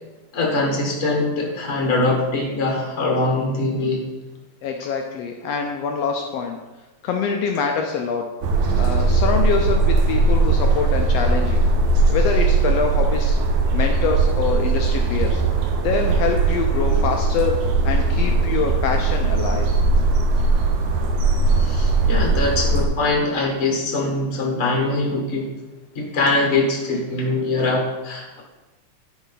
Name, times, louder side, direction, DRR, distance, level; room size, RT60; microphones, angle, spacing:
voice 1, 0.3-4.0 21.6-25.5 25.9-28.4, left 2 dB, 45° left, -1 dB, 1.0 m, -22 dB
voice 2, 4.6-6.6 7.0-8.3 8.8-11.7 12.1-13.4 13.7-15.4 15.8-19.7, left 6 dB, 80° left, 3 dB, 1.4 m, -25 dB
sound 1, 8.4-22.9, right 3 dB, 80° right, 2.2 m, -19 dB
11.5 x 4.9 x 4.0 m, 1.1 s
omnidirectional pair, 3.5 m